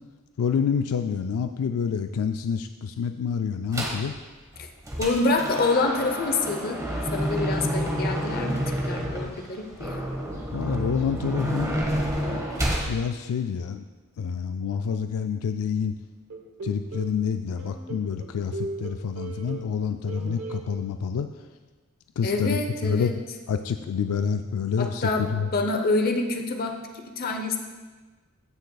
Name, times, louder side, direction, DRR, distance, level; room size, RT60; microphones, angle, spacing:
voice 1, 0.4-4.1 10.5-12.4 12.9-13.8 14.2-16.0 16.6-21.3 22.2-22.6 22.8-23.2 23.5-25.5, left 6 dB, 85° left, 8 dB, 0.4 m, -28 dB
sound 1, 3.7-4.1 4.5-12.9, equal, 15° right, 1.3 m, -29 dB
voice 2, 5.0-6.8 7.1-8.6 8.9-10.0 22.2-23.1 24.8-27.6, left 3 dB, 45° left, 4 dB, 0.8 m, -26 dB
sound 2, 16.3-17.2 17.6-19.8 20.1-20.6, right 3 dB, 65° right, 1.0 m, -37 dB
15.5 x 6.5 x 2.3 m, 1.3 s
head